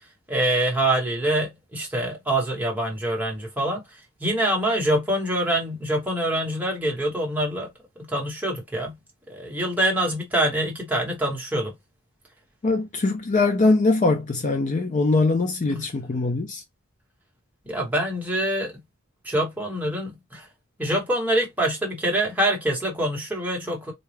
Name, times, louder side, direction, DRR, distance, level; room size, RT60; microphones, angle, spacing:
voice 1, 0.3-3.8 4.2-7.7 8.0-9.0 9.3-11.7 15.7-15.9 17.7-18.8 19.2-20.5 20.8-23.9, right 1 dB, 10° right, 1.0 m, -25 dB
voice 2, 12.6-16.6, left 3 dB, 35° left, 0.4 m, -22 dB
3.9 x 2.2 x 3.2 m
head